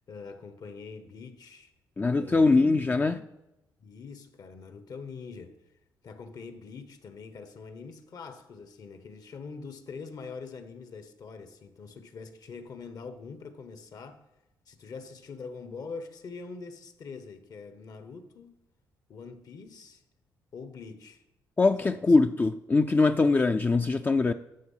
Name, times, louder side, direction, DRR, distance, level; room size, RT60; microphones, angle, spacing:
voice 1, 0.1-1.7 2.2-2.5 2.8-3.1 3.8-5.6 6.0-14.2 14.7-18.6 19.1-20.0 20.5-21.2 21.8-22.0, left 4 dB, 55° left, 1.2 m, -44 dB
voice 2, 2.0-3.2 21.6-24.3, left 3 dB, 25° left, 0.5 m, -22 dB
11.0 x 7.1 x 5.6 m
cardioid pair, 75°, 7 cm